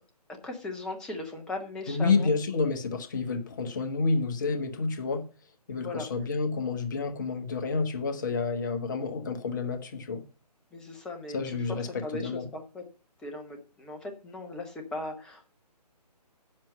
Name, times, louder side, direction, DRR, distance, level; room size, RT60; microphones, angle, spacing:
voice 1, 0.4-2.3 5.8-6.1 10.7-11.4 11.7-12.8 13.2-15.5, left 2 dB, 5° left, 0.8 m, -38 dB
voice 2, 1.9-5.3 5.7-10.2 11.3-12.5, left 4 dB, 30° left, 1.2 m, -29 dB
9.4 x 7.4 x 5.4 m
figure-of-eight pair, 145°, 21 cm